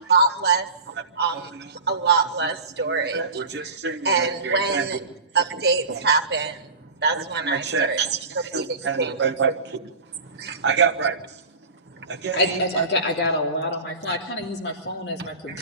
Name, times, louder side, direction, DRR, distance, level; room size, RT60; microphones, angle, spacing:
voice 1, 0.1-0.7 1.1-3.8 4.0-5.0 5.3-8.0 8.3-9.3 10.3-10.7 11.9-12.3 14.1-14.2 15.5-15.6, right 4 dB, 65° right, 5 dB, 1.5 m, -24 dB
voice 2, 3.0-4.8 7.1-7.2 7.5-8.2 8.5-9.8 10.6-11.2 12.1-12.4 12.8-12.9, right 6 dB, 80° right, 4 dB, 0.7 m, -25 dB
voice 3, 12.3-15.6, left 1 dB, 70° left, 1 dB, 3.0 m, -26 dB
23.0 x 14.0 x 9.8 m, 0.97 s
head